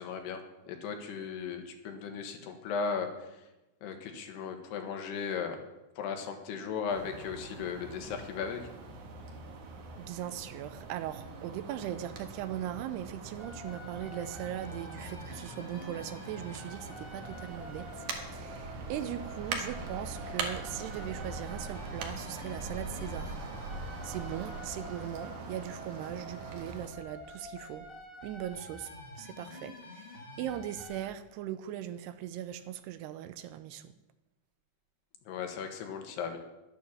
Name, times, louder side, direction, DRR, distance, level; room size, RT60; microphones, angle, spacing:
voice 1, 0.0-3.4 3.8-5.6 6.0-8.6 35.3-36.4, left 6 dB, 75° left, 5 dB, 3.3 m, -36 dB
sound 1, 6.9-26.9, right 3 dB, 60° right, 2.3 m, -42 dB
voice 2, 10.0-23.4 24.0-27.9 28.2-28.9 29.2-33.9, right 11 dB, 80° right, 12 dB, 2.5 m, -39 dB
sound 2, 13.4-31.0, left 1 dB, 35° left, 0.9 m, -48 dB
11.0 x 9.3 x 7.2 m, 0.98 s
omnidirectional pair, 4.9 m